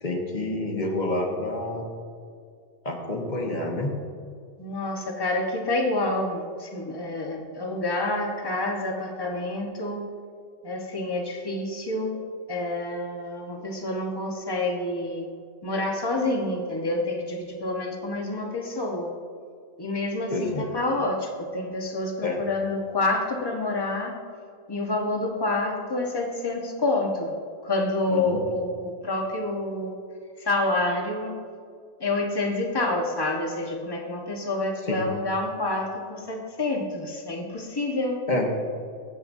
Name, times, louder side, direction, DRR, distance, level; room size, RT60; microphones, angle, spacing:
voice 1, 0.0-1.9 2.8-4.0 20.3-20.7 22.2-22.4 28.1-28.4 34.9-35.0 38.3-38.5, left 2 dB, 35° left, 0 dB, 1.6 m, -28 dB
voice 2, 4.6-10.0 10.6-12.2 12.5-15.3 15.6-19.1 19.8-24.1 24.7-27.4 27.6-29.9 30.4-31.3 32.0-38.2, left 2 dB, 20° left, 1 dB, 1.2 m, -28 dB
22.5 x 7.9 x 2.7 m, 2.2 s
omnidirectional pair, 1.3 m